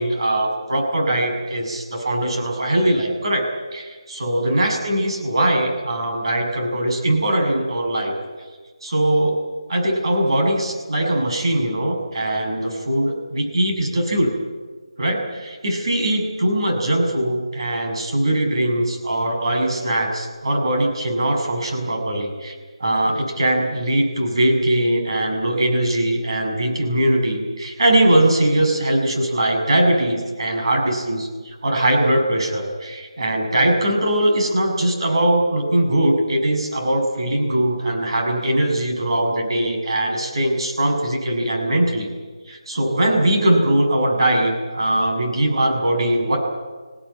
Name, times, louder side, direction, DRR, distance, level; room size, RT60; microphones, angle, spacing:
voice 1, 0.0-3.4 3.7-8.1 8.4-8.5 8.8-9.4 9.7-14.3 15.0-22.5 22.8-42.1 42.5-46.4, right 1 dB, 60° right, 2 dB, 6.6 m, -21 dB
25.0 x 17.0 x 9.8 m, 1.4 s
figure-of-eight pair, 170°, 3 cm